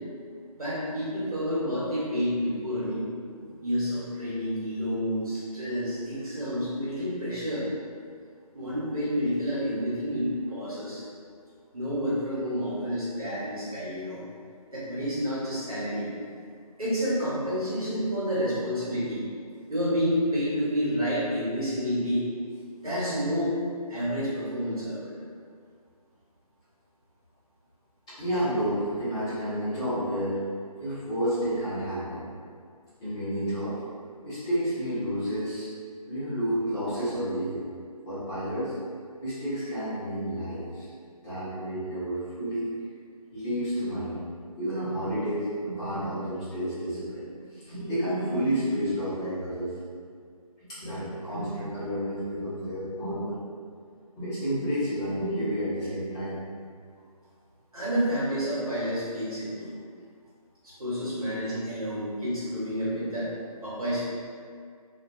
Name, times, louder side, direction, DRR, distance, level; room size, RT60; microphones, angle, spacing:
voice 1, 0.6-3.1 3.6-7.7 8.5-11.0 11.7-14.2 14.7-16.1 16.8-19.2 19.7-22.3 22.8-23.6 23.9-25.1 57.7-59.7 60.6-63.3 63.6-64.0, equal, 70° right, -9 dB, 1.3 m, -29 dB
voice 2, 28.1-30.4 30.7-32.2 33.0-33.8 34.2-35.7 36.1-37.6 38.1-38.7 39.2-40.9 41.2-42.7 43.3-49.7 50.6-53.4 54.2-56.4, equal, 10° left, -16 dB, 0.5 m, -30 dB
2.3 x 2.2 x 2.6 m, 2.1 s
figure-of-eight pair, 155°, 19 cm